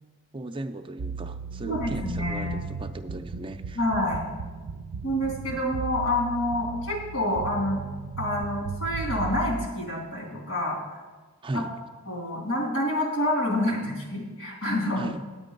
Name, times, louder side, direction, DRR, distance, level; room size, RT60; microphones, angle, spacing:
voice 1, 0.3-3.8 11.4-11.7 15.0-15.2, right 2 dB, 25° right, 8 dB, 0.5 m, -36 dB
sound 1, 1.0-9.7, right 5 dB, 85° right, 0.4 m, -36 dB
voice 2, 1.6-2.7 3.7-4.2 5.0-7.8 8.2-10.8 11.5-11.7 12.1-15.1, left 1 dB, 75° left, -1 dB, 3.1 m, -27 dB
9.3 x 8.9 x 5.2 m, 1.3 s
head